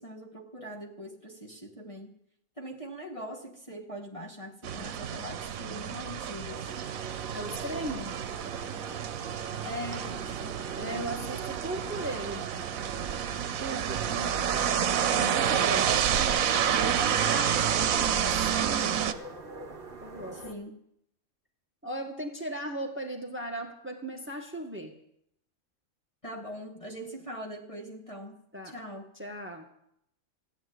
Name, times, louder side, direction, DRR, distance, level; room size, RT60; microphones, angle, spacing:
voice 1, 0.0-2.1 2.6-6.7 9.6-10.6 10.9-11.3 14.0-15.1 20.3-20.8 26.2-29.1, equal, 25° left, 0 dB, 2.0 m, -42 dB
sound 1, 4.6-19.1, right 8 dB, 85° right, 1.2 m, -29 dB
sound 2, 6.6-20.5, right 4 dB, 45° right, 1.4 m, -44 dB
voice 2, 7.3-8.1 10.7-12.8 13.6-14.0 15.1-15.9 16.5-19.1 20.0-20.4 21.8-24.9 28.5-28.7 29.2-29.7, right 1 dB, 10° right, 2 dB, 1.8 m, -37 dB
16.0 x 8.9 x 9.6 m, 0.73 s
omnidirectional pair, 1.4 m